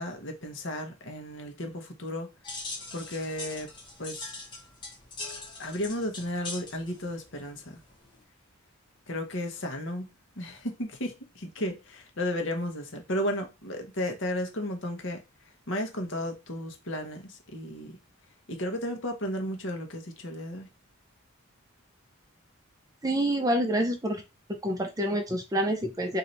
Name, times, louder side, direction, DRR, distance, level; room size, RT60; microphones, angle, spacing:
voice 1, 0.0-2.3 2.9-3.7 4.0-4.2 5.6-7.8 9.1-10.1 10.4-15.2 15.7-18.0 18.5-20.7, left 1 dB, 60° left, 1.0 m, -34 dB
sound 1, 2.4-8.2, left 3 dB, 20° left, 1.0 m, -42 dB
voice 2, 23.0-24.2 24.6-26.2, right 1 dB, 15° right, 0.5 m, -27 dB
3.2 x 2.7 x 4.0 m
head